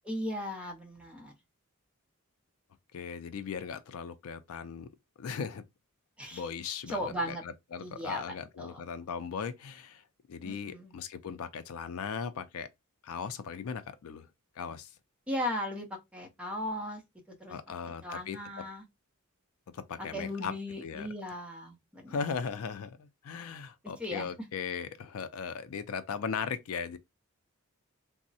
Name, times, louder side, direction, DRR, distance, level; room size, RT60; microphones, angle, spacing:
voice 1, 0.0-1.3 6.2-6.5 6.9-7.4 7.8-8.8 10.4-10.9 15.3-15.9 16.1-17.0 17.3-17.6 17.8-18.8 20.0-22.2 24.0-24.3, left 1 dB, 5° right, 0.6 m, -37 dB
voice 2, 2.9-4.9 5.2-5.6 6.3-12.7 13.0-14.3 14.6-14.9 17.5-18.6 19.7-20.5 20.8-21.1 22.1-27.0, left 6 dB, 65° left, 0.4 m, -38 dB
3.4 x 2.0 x 2.6 m
head